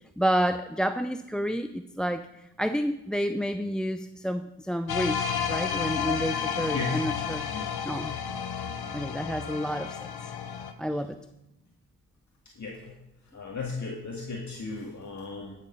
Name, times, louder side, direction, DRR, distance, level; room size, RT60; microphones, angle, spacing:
voice 1, 0.2-2.3 2.6-7.5 7.8-8.2 8.9-10.1 10.8-11.2, equal, ahead, 10 dB, 0.5 m, -29 dB
sound 1, 4.9-10.7, left 8 dB, 65° left, 1.1 m, -31 dB
voice 2, 6.7-7.0 7.5-7.7 12.6-12.9 13.3-15.6, left 4 dB, 45° left, -1 dB, 2.0 m, -35 dB
11.0 x 6.8 x 5.5 m, 0.91 s
supercardioid pair, 40°, 41 cm